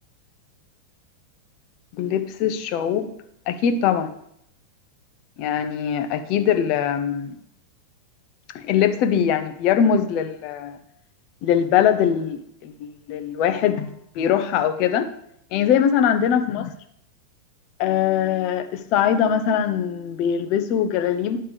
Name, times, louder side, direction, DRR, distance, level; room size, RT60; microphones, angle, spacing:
voice 1, 2.0-3.1 3.5-4.1 5.4-7.4 8.5-10.8 11.4-15.1 15.5-16.7 17.8-21.4, left 8 dB, 40° left, 9 dB, 0.6 m, -22 dB
9.5 x 3.3 x 5.2 m, 0.71 s
figure-of-eight pair, 90°, 0 cm